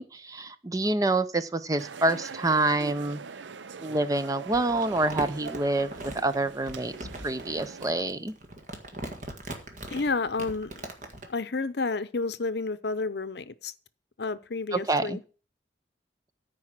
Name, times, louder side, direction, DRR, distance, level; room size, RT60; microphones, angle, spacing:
voice 1, 0.0-3.2 3.8-6.9 7.2-8.3 14.7-15.2, right 2 dB, 20° right, 0.5 m, -27 dB
sound 1, 1.8-7.9, right 5 dB, 80° right, 0.6 m, -42 dB
Crumpling crinkling, 4.5-11.3, right 1 dB, 45° right, 1.7 m, -40 dB
voice 2, 9.9-10.8 11.3-13.7 14.2-15.2, left 3 dB, 60° left, 0.7 m, -30 dB
14.0 x 4.9 x 7.4 m
head